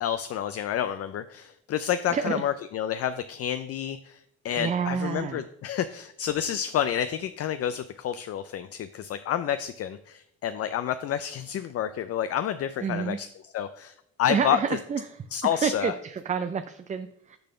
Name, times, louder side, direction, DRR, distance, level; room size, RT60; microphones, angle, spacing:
voice 1, 0.0-14.8 15.3-15.9, left 10 dB, 55° left, 11 dB, 0.4 m, -29 dB
voice 2, 2.1-2.4 4.6-5.4 12.8-13.2 14.3-15.0 15.5-17.4, right 6 dB, 25° right, 10 dB, 0.4 m, -29 dB
6.7 x 4.1 x 6.5 m, 0.74 s
cardioid pair, 90°, 30 cm